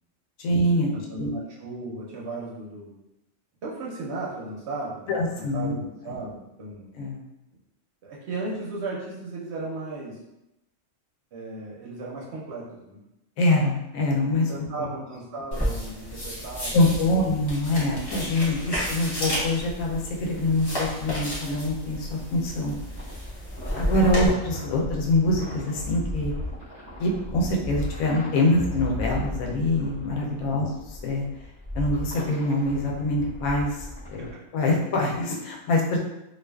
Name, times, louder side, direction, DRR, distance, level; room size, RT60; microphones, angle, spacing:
voice 1, 0.4-0.9 1.2-1.3 5.1-5.7 7.0-7.2 13.4-14.7 16.7-22.7 23.8-26.3 27.0-31.2 31.7-33.7 34.1-34.3 34.5-36.0, left 1 dB, 85° left, -1 dB, 1.0 m, -24 dB
voice 2, 0.9-2.9 3.6-6.9 8.0-10.2 11.3-13.0 14.5-16.8 18.6-18.7 24.0-24.3 30.4-30.7 34.2-34.4, right 2 dB, 65° right, -5 dB, 0.7 m, -36 dB
sound 1, 15.5-24.3, equal, 30° left, 0.4 m, -32 dB
sound 2, 22.9-34.3, left 1 dB, 15° right, 0.7 m, -36 dB
2.4 x 2.4 x 2.2 m, 0.91 s
omnidirectional pair, 1.4 m